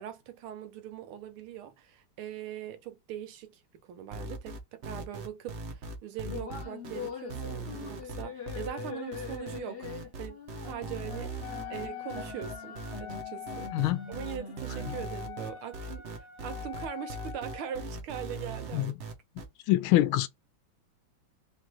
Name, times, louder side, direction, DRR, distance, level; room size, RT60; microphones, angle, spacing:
voice 1, 0.0-9.9 10.2-11.3 11.7-13.7 14.1-19.0, right 10 dB, 90° right, 1.6 m, -41 dB
sound 1, 4.1-19.5, right 2 dB, 55° right, 0.8 m, -40 dB
sound 2, 6.2-15.2, left 7 dB, 45° left, 0.8 m, -43 dB
Wind instrument woodwind instrument, 11.4-17.9, left 10 dB, 70° left, 1.3 m, -44 dB
voice 2, 19.7-20.3, left 15 dB, 85° left, 1.5 m, -24 dB
4.1 x 2.5 x 4.4 m
omnidirectional pair, 2.3 m